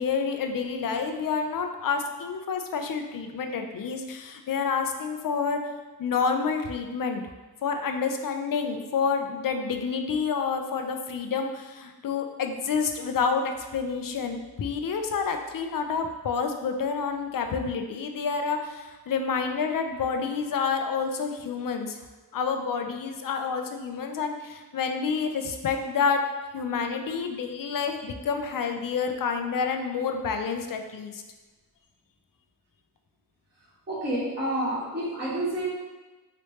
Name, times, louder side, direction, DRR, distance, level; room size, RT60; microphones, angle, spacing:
voice 1, 0.0-5.6 6.0-7.2 7.6-22.0 22.3-26.2 26.5-31.2, left 5 dB, 55° left, 5 dB, 0.5 m, -28 dB
voice 2, 33.9-35.7, right 1 dB, 25° right, -10 dB, 1.1 m, -29 dB
3.2 x 2.9 x 3.0 m, 1.2 s
cardioid pair, 55°, 40 cm